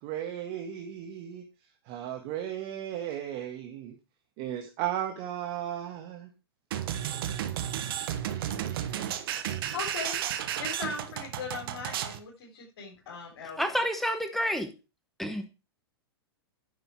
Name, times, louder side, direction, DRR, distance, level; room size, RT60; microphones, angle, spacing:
voice 1, 0.0-1.4 1.9-3.9 4.4-6.3, right 11 dB, 45° right, 4 dB, 1.7 m, -35 dB
sound 1, 6.7-12.2, right 10 dB, 60° right, 1.3 m, -33 dB
voice 2, 9.6-10.2 10.6-13.8, left 5 dB, 60° left, -3 dB, 4.3 m, -39 dB
voice 3, 13.6-14.7 15.2-15.4, equal, ahead, 7 dB, 1.3 m, -29 dB
9.7 x 6.8 x 4.7 m, 0.30 s
hypercardioid pair, 110°, 13 cm